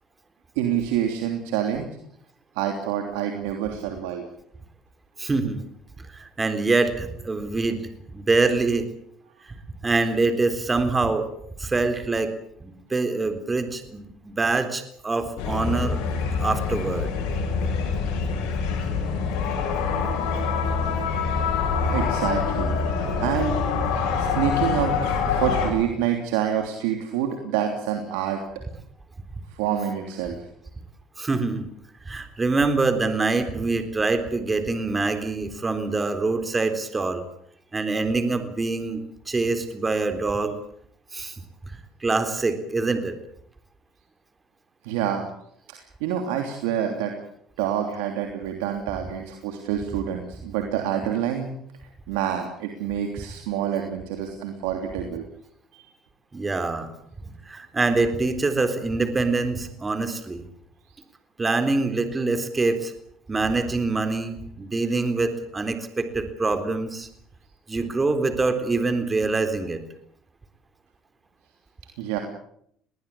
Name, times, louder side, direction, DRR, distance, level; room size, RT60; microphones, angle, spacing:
voice 1, 0.5-2.0 2.5-4.2 21.9-23.6 24.2-28.4 29.5-30.4 44.8-45.3 45.7-47.2 47.6-51.5 52.1-55.2 55.7-55.9 72.0-72.2, right 9 dB, 85° right, 4 dB, 3.1 m, -27 dB
voice 2, 5.2-5.6 6.1-7.8 8.1-8.9 9.8-11.3 11.6-12.3 12.6-16.0 16.4-17.1 31.2-31.7 32.1-37.2 37.7-39.0 39.3-40.5 41.1-41.3 42.0-43.2 56.3-56.9 57.5-60.5 61.4-62.9 63.3-67.1 67.7-69.8, right 3 dB, 20° right, 9 dB, 3.8 m, -25 dB
sound 1, 15.4-25.7, left 5 dB, 80° left, 7.7 m, -25 dB
21.0 x 19.0 x 8.6 m, 0.69 s
supercardioid pair, 90°, 0 cm